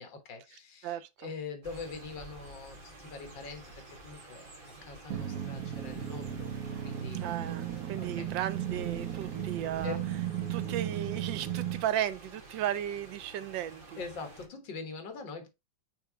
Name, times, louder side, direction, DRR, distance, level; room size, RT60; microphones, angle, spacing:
voice 1, 0.0-6.5 6.8-7.3 8.0-8.3 9.8-10.2 14.0-15.5, left 4 dB, 75° left, 2.1 m, -43 dB
voice 2, 0.8-1.3 7.2-10.0 10.5-14.0, right 11 dB, 80° right, 1.4 m, -35 dB
sound 1, 1.6-14.5, right 2 dB, 30° right, 1.5 m, -51 dB
sound 2, 5.1-11.9, right 10 dB, 55° right, 1.4 m, -35 dB
5.7 x 3.6 x 4.6 m
omnidirectional pair, 2.0 m